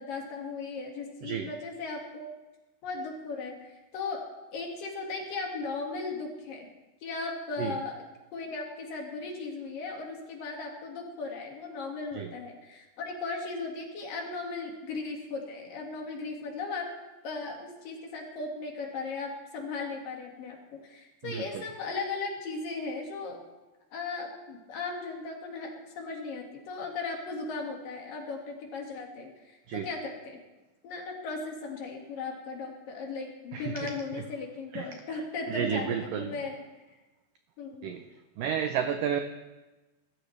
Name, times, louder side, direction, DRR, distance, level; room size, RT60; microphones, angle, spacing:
voice 1, 0.0-2.3 2.8-6.7 7.0-8.0 8.3-16.9 17.2-23.4 23.9-30.4 30.8-36.6 37.6-37.9, left 4 dB, 60° left, 0 dB, 3.4 m, -37 dB
voice 2, 1.2-1.5 7.6-7.8 12.2-12.3 21.2-21.6 29.7-29.9 33.5-34.2 34.7-34.9 35.5-36.3 37.8-38.0 38.4-39.2, right 8 dB, 85° right, 7 dB, 1.9 m, -32 dB
22.5 x 13.0 x 3.3 m, 1.1 s
omnidirectional pair, 4.9 m